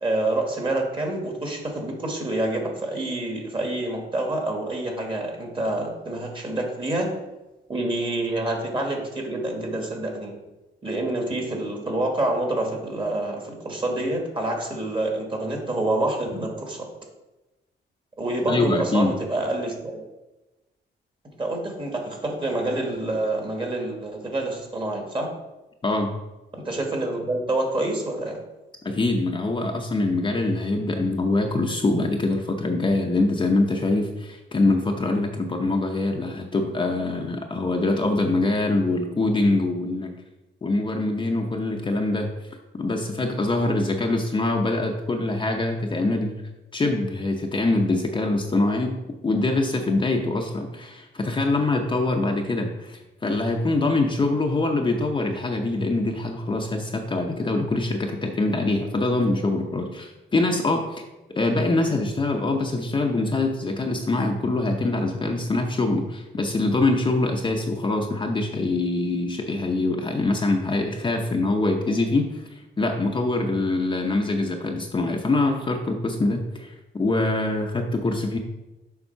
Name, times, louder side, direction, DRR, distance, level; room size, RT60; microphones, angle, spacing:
voice 1, 0.0-7.1 7.7-10.3 10.8-16.9 18.2-20.0 21.2-25.3 26.5-28.4, right 2 dB, 25° right, 1 dB, 1.5 m, -27 dB
voice 2, 18.5-19.2 25.8-26.1 28.8-40.1 40.6-42.3 42.8-46.3 46.7-61.0 61.3-78.4, left 2 dB, 25° left, 2 dB, 0.6 m, -24 dB
7.1 x 3.6 x 5.6 m, 1.0 s
cardioid pair, 120°, 19 cm